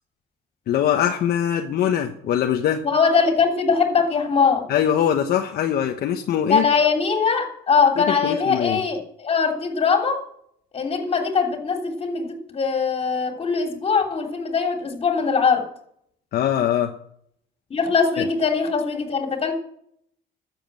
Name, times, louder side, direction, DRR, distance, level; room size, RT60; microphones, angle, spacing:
voice 1, 0.7-2.8 4.7-6.6 8.2-8.8 16.3-16.9 18.2-18.3, left 9 dB, 65° left, 3 dB, 1.1 m, -22 dB
voice 2, 2.8-4.7 6.5-10.2 10.7-15.7 17.7-19.5, left 5 dB, 35° left, 3 dB, 3.1 m, -21 dB
12.5 x 7.6 x 7.7 m, 0.69 s
cardioid pair, 110°, 17 cm